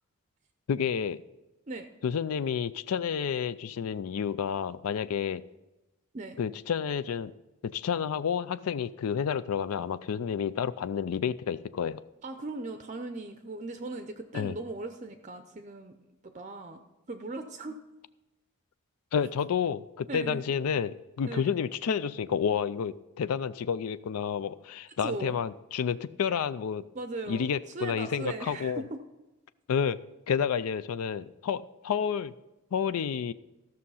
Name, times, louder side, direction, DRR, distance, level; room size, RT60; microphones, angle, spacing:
voice 1, 0.7-1.2 2.0-5.4 6.4-7.3 7.7-12.0 14.3-14.5 19.1-26.8 27.3-28.8 29.7-30.0 30.3-32.3 32.7-33.3, left 7 dB, 80° left, 15 dB, 0.4 m, -30 dB
voice 2, 12.2-16.0 16.2-16.8 17.1-17.8 20.1-20.4 21.3-21.5 25.0-25.4 26.9-29.0, right 2 dB, 35° right, 7 dB, 0.5 m, -38 dB
14.0 x 6.4 x 5.6 m, 1.0 s
head